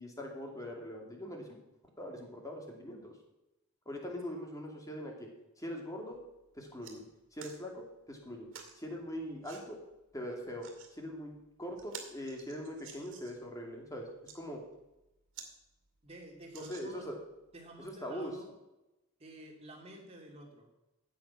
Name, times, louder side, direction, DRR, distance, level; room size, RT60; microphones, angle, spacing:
voice 1, 0.0-1.6 2.0-3.1 3.9-5.3 5.6-6.2 6.5-7.0 7.3-8.5 8.8-9.8 10.1-14.1 14.3-14.6 16.5-17.2 17.8-18.3, equal, 15° left, 1 dB, 2.5 m, -42 dB
sound 1, 6.1-6.3 6.6-7.0 7.4-7.6 8.5-8.8 9.4-9.6 10.4-10.9 11.4-11.5 11.8-13.4 14.1-14.4 14.9-15.0 15.3-15.5 15.9-16.0 16.5-17.2 17.9-18.0, right 6 dB, 55° right, 2.4 m, -50 dB
voice 2, 16.0-17.1 17.5-18.5 19.2-20.7, right 1 dB, 25° right, 1 dB, 2.7 m, -50 dB
14.5 x 8.7 x 5.9 m, 0.96 s
head